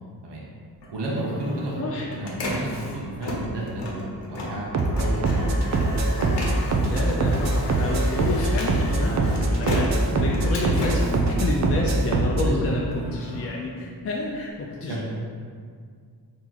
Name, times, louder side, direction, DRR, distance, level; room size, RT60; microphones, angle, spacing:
Printer, 0.7-12.2 12.6-14.5, left 1 dB, 80° left, 0.9 m, -34 dB
voice 1, 0.9-5.5 12.4-12.8 14.9-15.0, right 1 dB, 80° right, -5 dB, 0.9 m, -32 dB
voice 2, 1.8-2.1 6.8-15.0, left 2 dB, 35° left, -2 dB, 0.4 m, -29 dB
sound 1, 4.7-12.5, right 2 dB, 45° right, 0.5 m, -23 dB
4.5 x 2.9 x 3.9 m, 2.1 s
wide cardioid pair, 105°, 41 cm